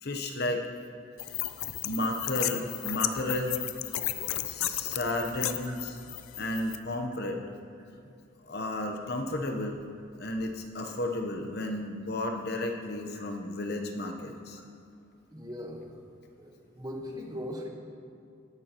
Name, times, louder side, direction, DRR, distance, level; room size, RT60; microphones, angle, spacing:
voice 1, 0.0-0.7 1.8-3.6 4.4-6.0 6.4-7.4 8.4-9.8 10.2-14.6, left 1 dB, 50° left, 3 dB, 0.8 m, -33 dB
sound 1, 1.2-6.8, left 13 dB, 90° left, 0.5 m, -34 dB
voice 2, 15.3-15.8 16.4-17.7, left 1 dB, 20° right, 1 dB, 1.2 m, -40 dB
17.5 x 10.5 x 3.0 m, 2.5 s
head